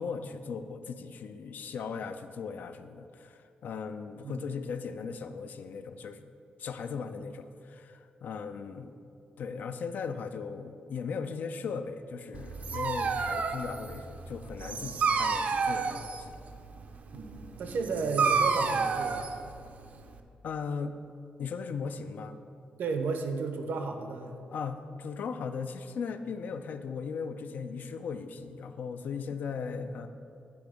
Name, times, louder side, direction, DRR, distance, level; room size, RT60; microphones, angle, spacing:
voice 1, 0.0-6.2 6.6-8.9 9.4-16.4 20.4-20.9 21.4-22.4 24.5-30.1, left 5 dB, 65° left, 9 dB, 0.3 m, -38 dB
Dog, 12.3-20.2, right 5 dB, 50° right, 0.4 m, -30 dB
voice 2, 14.6-15.0 17.1-19.4 22.8-24.3, right 4 dB, 90° right, 5 dB, 0.6 m, -34 dB
8.5 x 3.5 x 5.0 m, 2.4 s
wide cardioid pair, 155°, 3 cm